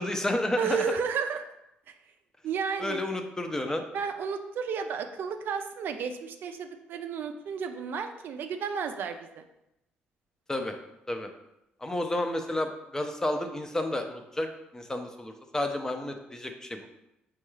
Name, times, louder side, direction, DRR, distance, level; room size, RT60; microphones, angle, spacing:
voice 1, 0.0-0.8 2.8-3.8 10.5-10.7 11.1-11.3 11.8-14.5 14.7-16.9, left 1 dB, 15° left, 5 dB, 0.5 m, -31 dB
voice 2, 0.6-1.4 1.9-2.0 2.4-3.0 3.9-9.4, right 6 dB, 65° right, 7 dB, 0.3 m, -32 dB
4.4 x 2.3 x 3.1 m, 0.86 s
cardioid pair, 80°, 4 cm